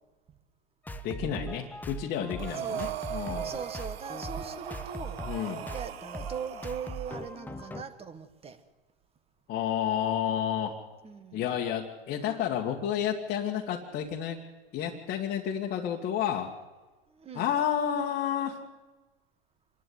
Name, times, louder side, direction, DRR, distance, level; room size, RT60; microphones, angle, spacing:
sound 1, 0.8-7.8, right 1 dB, 5° left, 1.0 m, -40 dB
voice 1, 1.0-3.5 5.2-5.7 9.5-10.7 11.3-14.4 14.7-16.5 17.3-18.7, left 9 dB, 30° left, 0 dB, 2.0 m, -31 dB
Breathing, 2.4-7.3, right 11 dB, 70° right, 1.2 m, -39 dB
voice 2, 2.6-8.6 11.0-11.4 17.1-17.5, right 6 dB, 20° right, 11 dB, 1.8 m, -41 dB
26.0 x 11.5 x 9.6 m, 1.2 s
hypercardioid pair, 120°, 31 cm